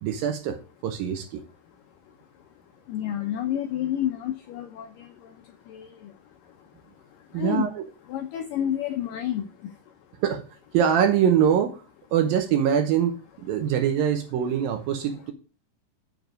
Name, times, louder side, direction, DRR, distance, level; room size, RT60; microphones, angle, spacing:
voice 1, 0.0-1.4 7.3-7.7 10.2-10.4 10.7-11.8 12.1-15.3, right 8 dB, 75° right, 7 dB, 2.4 m, -23 dB
voice 2, 2.9-5.1 5.7-5.9 7.4-7.7 8.1-9.5, left 11 dB, 90° left, 6 dB, 1.9 m, -29 dB
7.7 x 7.1 x 5.3 m, 0.36 s
omnidirectional pair, 4.8 m